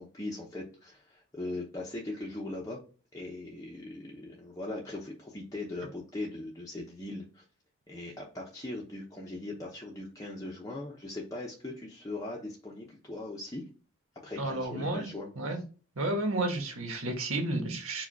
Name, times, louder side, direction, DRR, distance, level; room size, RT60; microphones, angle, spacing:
voice 1, 0.0-2.8 3.1-7.4 7.9-13.6 14.2-15.3, left 2 dB, 15° left, -3 dB, 0.7 m, -40 dB
voice 2, 14.3-15.0 15.4-15.6 15.9-18.1, right 2 dB, 80° right, 3 dB, 1.4 m, -31 dB
4.7 x 2.4 x 4.6 m, 0.36 s
head